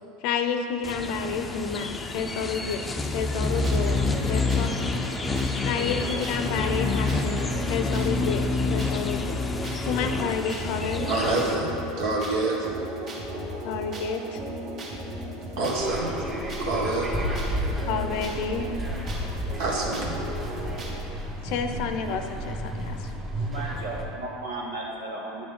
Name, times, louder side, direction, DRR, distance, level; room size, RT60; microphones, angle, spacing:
voice 1, 0.2-4.7 5.6-9.4 9.9-11.5 13.6-14.4 17.9-18.7 21.4-23.1, left 6 dB, 65° left, 7 dB, 0.6 m, -30 dB
sound 1, 0.8-11.6, left 3 dB, 20° left, 0.6 m, -28 dB
sound 2, 3.4-21.1, equal, 50° right, 1.6 m, -36 dB
voice 2, 11.1-11.7 12.0-12.6 15.5-16.1 16.6-17.1 19.6-20.2, right 2 dB, 70° right, -2 dB, 1.5 m, -26 dB
sound 3, 15.7-24.0, equal, 30° right, 1.4 m, -32 dB
voice 3, 23.4-25.4, right 2 dB, 90° right, -4 dB, 1.5 m, -35 dB
9.7 x 6.2 x 3.7 m, 2.9 s
hypercardioid pair, 90°, 0 cm